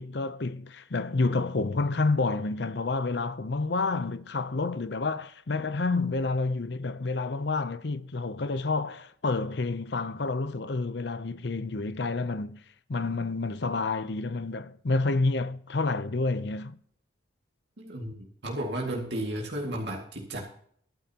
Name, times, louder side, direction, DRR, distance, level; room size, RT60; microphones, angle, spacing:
voice 1, 0.0-12.6 12.9-16.8, left 3 dB, 65° left, 0.7 m, -29 dB
voice 2, 17.8-20.4, right 1 dB, 65° right, 2.1 m, -33 dB
22.5 x 8.9 x 2.9 m
head